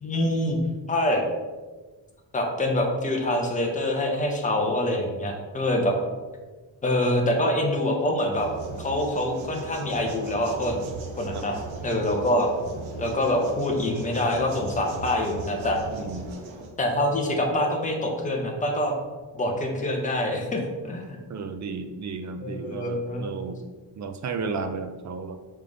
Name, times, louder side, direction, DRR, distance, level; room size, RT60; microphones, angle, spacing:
voice 1, 0.0-0.6 0.9-1.2 2.3-5.9 6.8-8.5 8.8-10.8 11.2-11.6 11.8-12.5 13.0-15.8 16.8-18.9 19.3-21.2 22.4-23.3, left 1 dB, 15° left, 1 dB, 0.8 m, -25 dB
sound 1, 8.3-16.7, right 3 dB, 65° right, 0.9 m, -38 dB
voice 2, 15.9-16.3 21.3-23.6 24.0-25.4, right 4 dB, 40° right, 8 dB, 0.4 m, -33 dB
6.7 x 3.6 x 3.8 m, 1.3 s
wide cardioid pair, 170°, 50 cm